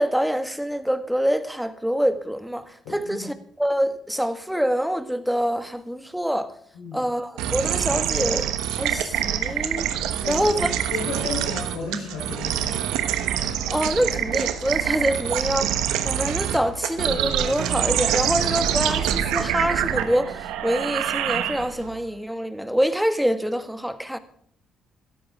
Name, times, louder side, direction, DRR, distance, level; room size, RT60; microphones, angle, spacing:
voice 1, 0.0-6.5 6.9-9.9 10.3-10.7 13.7-15.8 16.0-24.2, equal, 5° right, 1.7 m, -25 dB
voice 2, 2.8-3.3 6.7-7.1 10.2-12.8, left 4 dB, 85° left, 3.8 m, -34 dB
sound 1, 7.4-21.9, right 10 dB, 80° right, 1.2 m, -25 dB
17.0 x 13.0 x 3.7 m
hypercardioid pair, 55°, 0 cm